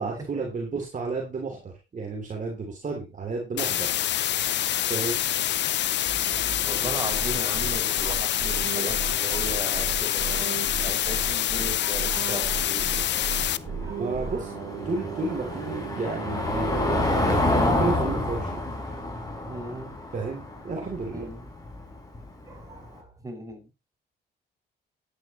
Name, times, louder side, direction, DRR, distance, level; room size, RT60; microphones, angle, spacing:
voice 1, 0.0-4.0 4.9-5.2 13.9-14.5 14.8-18.6 20.1-21.3, right 3 dB, 40° right, 0 dB, 3.1 m, -32 dB
sound 1, 3.6-13.6, left 12 dB, 65° left, 0.6 m, -26 dB
sound 2, 6.0-18.4, right 6 dB, 65° right, 3.5 m, -36 dB
voice 2, 6.6-13.0 13.8-14.1 19.4-19.9 21.1-21.5 22.5-23.7, right 1 dB, 15° right, 0 dB, 6.3 m, -37 dB
Car passing by / Engine, 12.2-22.8, left 2 dB, 20° left, 5.1 m, -29 dB
13.5 x 10.5 x 3.1 m, 0.27 s
cardioid pair, 90°, 20 cm